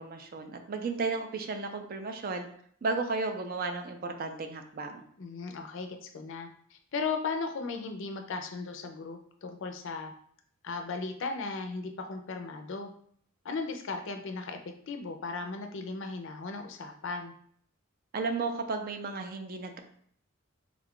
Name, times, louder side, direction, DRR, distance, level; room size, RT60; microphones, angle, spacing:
voice 1, 0.0-2.5 2.8-5.0 18.1-19.8, right 4 dB, 45° right, 5 dB, 0.4 m, -34 dB
voice 2, 5.2-10.1 10.6-12.9 13.4-17.3, left 4 dB, 60° left, 5 dB, 0.5 m, -36 dB
3.5 x 2.3 x 3.6 m, 0.62 s
head